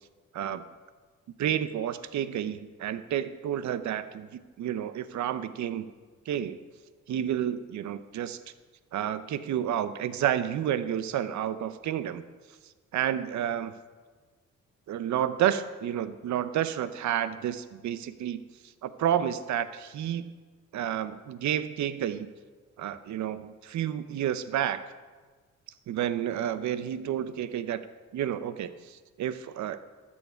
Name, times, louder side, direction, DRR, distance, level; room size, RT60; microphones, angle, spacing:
voice 1, 1.4-4.3 4.6-5.9 6.3-6.6 7.1-8.4 8.9-12.2 12.9-13.7 14.9-18.4 18.8-20.2 20.7-22.3 22.8-24.8 25.9-27.8 28.1-29.9, right 10 dB, 70° right, 13 dB, 0.8 m, -30 dB
13.0 x 7.1 x 5.7 m, 1.4 s
cardioid pair, 90°, 30 cm